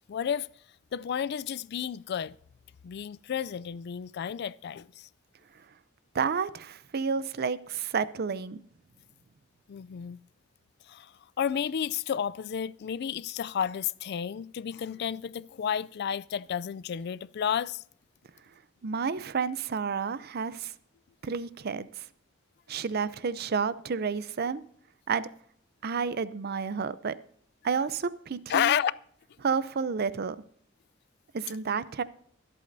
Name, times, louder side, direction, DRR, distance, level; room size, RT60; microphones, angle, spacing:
voice 1, 0.1-0.5 0.9-2.3 2.8-5.1 9.7-10.2 10.9-11.1 11.4-17.8 28.5-28.9, left 8 dB, 55° left, 0.3 m, -31 dB
voice 2, 6.1-8.6 18.8-20.7 21.2-22.0 22.7-24.6 25.1-25.3 25.8-27.1 27.6-28.7 29.4-30.4 31.3-32.0, right 5 dB, 50° right, 0.5 m, -30 dB
24.0 x 8.4 x 2.7 m
head